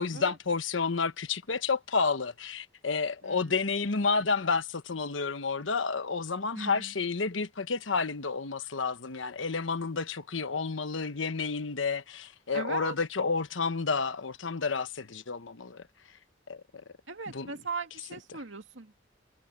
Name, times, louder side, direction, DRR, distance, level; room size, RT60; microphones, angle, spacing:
voice 1, 0.0-15.8 16.5-16.6 17.3-17.5, left 4 dB, 85° left, 1.1 m, -30 dB
voice 2, 3.2-3.6 6.6-6.9 12.5-13.0 17.1-18.9, right 4 dB, 80° right, 2.6 m, -39 dB
head